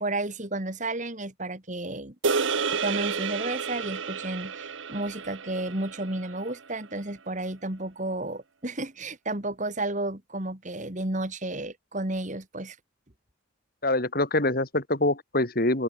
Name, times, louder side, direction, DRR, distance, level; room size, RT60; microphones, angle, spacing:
voice 1, 0.0-2.1 2.7-12.8, right 2 dB, 35° right, 2.6 m, -32 dB
sound 1, 2.2-6.7, right 5 dB, 70° right, 1.1 m, -31 dB
voice 2, 13.8-15.8, left 2 dB, 45° left, 2.8 m, -25 dB
open air
head